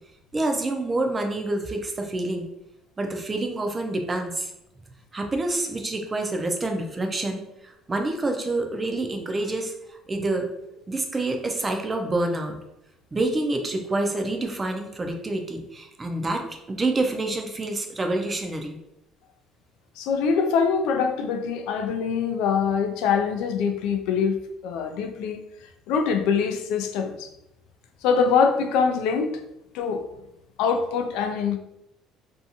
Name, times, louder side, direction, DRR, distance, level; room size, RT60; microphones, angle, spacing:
voice 1, 0.3-2.5 3.0-4.5 5.1-10.5 10.7-12.6 13.1-18.8, right 2 dB, 20° right, 4 dB, 0.4 m, -27 dB
voice 2, 20.0-24.4 24.6-25.4 25.9-27.3 28.0-29.4 29.7-30.0 30.6-31.6, left 6 dB, 80° left, 6 dB, 0.3 m, -24 dB
2.5 x 2.3 x 2.8 m, 0.85 s
cardioid pair, 135°, 0 cm